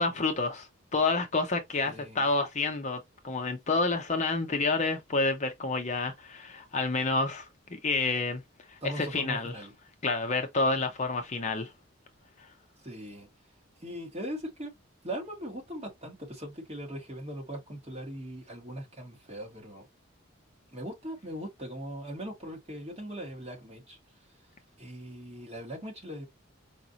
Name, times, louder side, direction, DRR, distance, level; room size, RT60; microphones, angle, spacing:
voice 1, 0.0-8.4 8.7-9.5 10.0-11.7 12.4-12.5, left 3 dB, 35° left, 0.6 m, -29 dB
voice 2, 1.8-2.2 8.8-9.7 12.8-13.3 13.8-14.7 15.0-19.9 20.7-24.0 24.8-26.2, equal, 30° right, 1.9 m, -40 dB
4.9 x 2.6 x 2.8 m
head